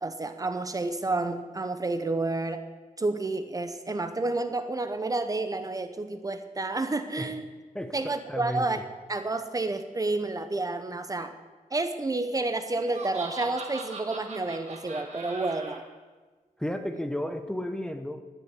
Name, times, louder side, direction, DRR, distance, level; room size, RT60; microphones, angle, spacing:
voice 1, 0.0-2.6 3.0-7.5 7.9-8.8 9.1-11.4 11.7-15.8, right 2 dB, 25° right, 9 dB, 0.8 m, -30 dB
voice 2, 8.3-8.7 16.6-18.2, left 1 dB, 5° left, 7 dB, 0.8 m, -32 dB
Laughter, 12.7-15.8, right 3 dB, 50° right, 2.2 m, -40 dB
11.5 x 10.0 x 8.2 m, 1.3 s
wide cardioid pair, 180°, 14 cm